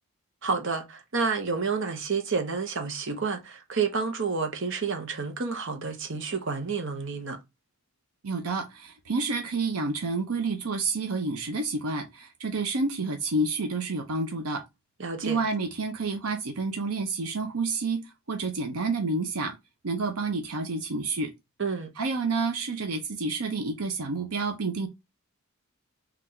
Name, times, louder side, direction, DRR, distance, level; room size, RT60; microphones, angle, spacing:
voice 1, 0.4-7.4 15.0-15.4 21.6-21.9, right 5 dB, 55° right, 0.9 m, -29 dB
voice 2, 8.2-14.6 15.2-18.0 18.3-19.6 19.8-21.3 22.0-24.9, right 3 dB, 85° right, 0.7 m, -29 dB
4.0 x 2.5 x 4.3 m
head